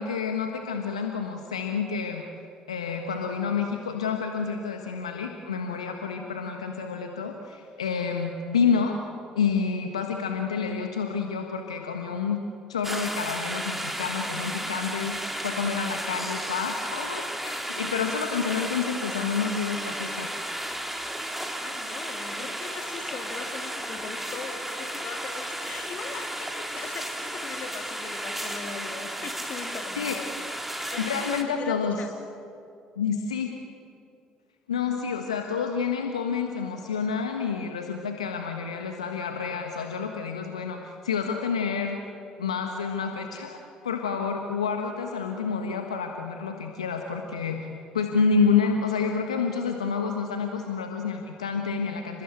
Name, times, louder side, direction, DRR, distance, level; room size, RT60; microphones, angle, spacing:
voice 1, 0.0-2.2 2.7-9.0 9.4-12.4 12.7-20.3 30.0-30.2 31.0-32.0 33.0-33.5 34.7-42.0 42.4-47.7 47.9-52.2, left 5 dB, 80° left, 4 dB, 1.4 m, -29 dB
sound 1, 12.8-31.4, right 1 dB, 5° right, 3.8 m, -34 dB
voice 2, 16.2-16.5 21.6-30.3 30.9-32.1, left 5 dB, 50° left, 5 dB, 3.3 m, -40 dB
29.5 x 20.5 x 9.1 m, 2.5 s
figure-of-eight pair, 55°, 3 cm